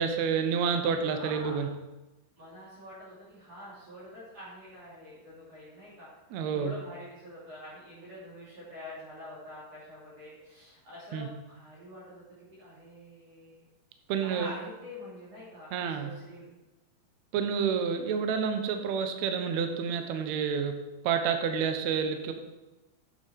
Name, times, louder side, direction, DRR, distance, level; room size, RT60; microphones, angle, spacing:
voice 1, 0.0-1.7 6.3-6.7 11.1-11.3 14.1-14.5 15.7-16.1 17.3-20.8 21.0-22.3, right 6 dB, 85° right, 6 dB, 1.6 m, -29 dB
voice 2, 1.1-1.6 2.4-6.1 6.5-12.2 12.5-13.7 14.2-16.5, left 1 dB, 45° right, -8 dB, 3.8 m, -46 dB
8.4 x 8.0 x 4.5 m, 1.1 s
omnidirectional pair, 4.4 m